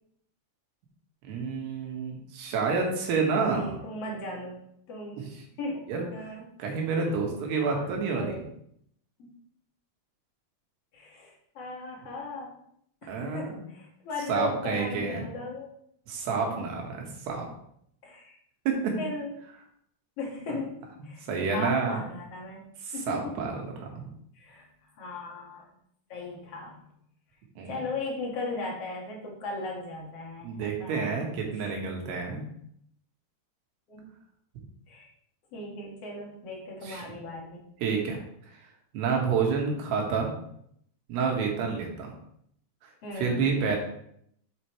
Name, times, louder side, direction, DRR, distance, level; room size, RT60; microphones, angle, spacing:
voice 1, 1.2-3.8 5.1-5.3 5.9-6.0 6.6-8.4 13.1-13.6 14.3-15.3 16.1-17.5 18.7-18.9 21.2-22.0 22.8-24.1 27.6-27.7 30.4-32.4 36.8-37.1 37.8-38.2 38.9-40.3 41.1-42.1 42.8-43.8, right 5 dB, 80° right, 1 dB, 3.6 m, -29 dB
voice 2, 3.4-5.3 5.6-5.8 6.1-6.4 7.6-7.9 8.1-8.4 9.2-9.3 10.9-12.6 13.0-15.7 16.6-16.7 18.0-18.4 19.0-19.3 20.2-21.2 21.5-22.7 22.9-23.4 24.3-24.7 25.0-25.7 26.1-26.8 27.7-31.3 31.6-31.7 33.9-34.1 34.9-35.1 35.5-37.6 43.0-43.4, left 2 dB, 50° left, -2 dB, 2.2 m, -37 dB
8.1 x 7.8 x 3.1 m, 0.69 s
omnidirectional pair, 4.7 m